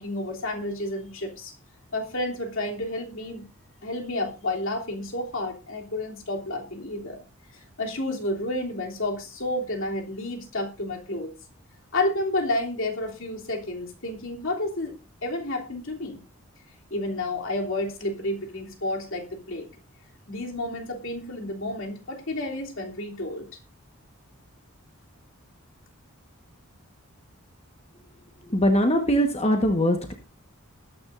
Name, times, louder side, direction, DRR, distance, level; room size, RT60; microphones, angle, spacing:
voice 1, 0.0-1.5 1.9-3.4 3.8-7.2 7.5-11.3 11.9-16.2 16.9-19.7 20.3-23.5, left 1 dB, 60° left, 1 dB, 3.2 m, -30 dB
voice 2, 28.5-30.1, equal, 30° left, 4 dB, 1.4 m, -21 dB
20.5 x 9.7 x 2.6 m, 0.28 s
head